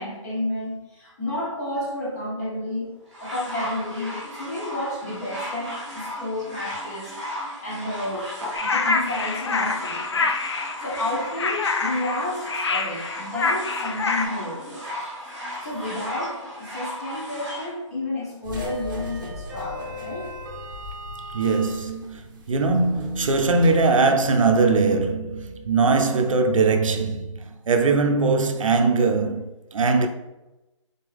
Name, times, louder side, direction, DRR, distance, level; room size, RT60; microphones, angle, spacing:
voice 1, 0.0-2.9 3.2-8.3 8.6-15.2 15.6-20.3, left 1 dB, 30° left, 1.5 m, -31 dB
sound 1, 3.1-17.7 18.6-18.7, left 1 dB, ahead, 0.6 m, -36 dB
sound 2, 8.5-14.2, left 4 dB, 55° left, 0.5 m, -26 dB
sound 3, 18.4-25.0, left 1 dB, 40° right, 0.8 m, -37 dB
voice 2, 21.3-22.2 22.5-30.1, right 4 dB, 80° right, 0.6 m, -21 dB
3.9 x 3.6 x 3.4 m
hypercardioid pair, 175°, 17 cm